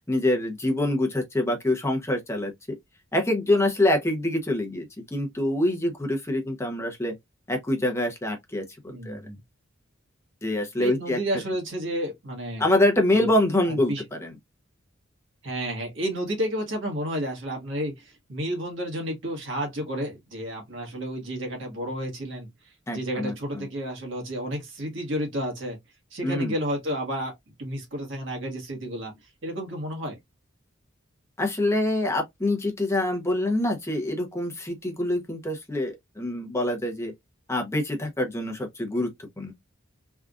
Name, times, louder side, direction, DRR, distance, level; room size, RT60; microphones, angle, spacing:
voice 1, 0.1-2.5 3.1-7.1 7.5-9.2 10.4-11.2 12.6-13.9 14.2-14.3 22.9-23.6 26.2-26.5 31.4-37.1 37.5-39.1 39.4-39.5, left 1 dB, 15° left, 0.7 m, -25 dB
voice 2, 8.9-9.4 10.8-12.6 13.1-13.3 13.6-14.0 15.4-22.5 22.9-25.8 26.1-27.3 27.6-30.2, equal, 65° right, 1.5 m, -31 dB
3.4 x 2.4 x 2.4 m
head